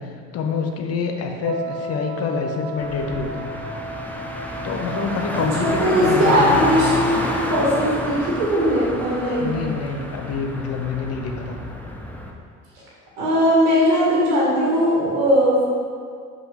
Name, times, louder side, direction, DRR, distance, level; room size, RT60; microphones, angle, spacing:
voice 1, 0.0-3.5 4.6-6.6 9.4-11.6, left 5 dB, 40° left, 4 dB, 0.9 m, -26 dB
Wind instrument woodwind instrument, 1.4-6.1, right 2 dB, 50° right, 0.5 m, -34 dB
Car, 2.8-12.3, equal, 5° left, 0.8 m, -29 dB
voice 2, 5.3-9.5 13.2-15.6, equal, 70° right, -6 dB, 1.9 m, -19 dB
5.6 x 5.5 x 4.8 m, 2.2 s
figure-of-eight pair, 60°, 38 cm